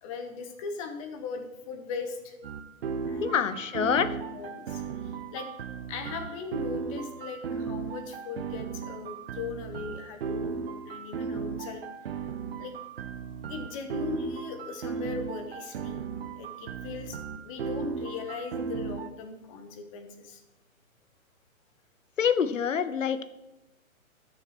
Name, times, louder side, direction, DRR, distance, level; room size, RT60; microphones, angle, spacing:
voice 1, 0.0-2.4 3.1-3.6 4.3-5.5 5.9-11.8 12.6-12.7 13.5-16.0 16.4-20.4, left 5 dB, 25° left, 6 dB, 1.1 m, -39 dB
sound 1, 2.4-19.1, right 5 dB, 45° right, 0.8 m, -36 dB
voice 2, 3.2-4.2 22.2-23.2, left 7 dB, 60° left, 13 dB, 0.9 m, -26 dB
16.0 x 6.5 x 3.1 m, 0.99 s
figure-of-eight pair, 125°, 42 cm